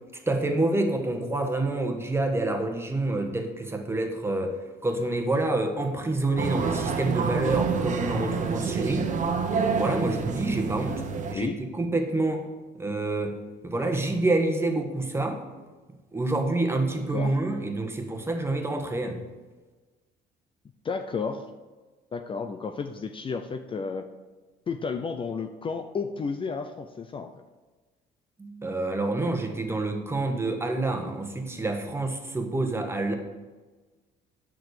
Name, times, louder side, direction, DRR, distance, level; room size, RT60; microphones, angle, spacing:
voice 1, 0.3-9.1 9.8-11.0 11.3-12.4 12.7-13.4 13.6-15.4 16.1-19.2 28.4-33.1, right 2 dB, 15° right, 4 dB, 1.4 m, -27 dB
sound 1, 6.4-11.3, right 5 dB, 45° right, 1.1 m, -28 dB
voice 2, 20.8-21.5 22.1-24.1 24.7-27.3, left 5 dB, 30° left, 7 dB, 0.6 m, -32 dB
9.2 x 6.2 x 6.6 m, 1.3 s
cardioid pair, 110°, 17 cm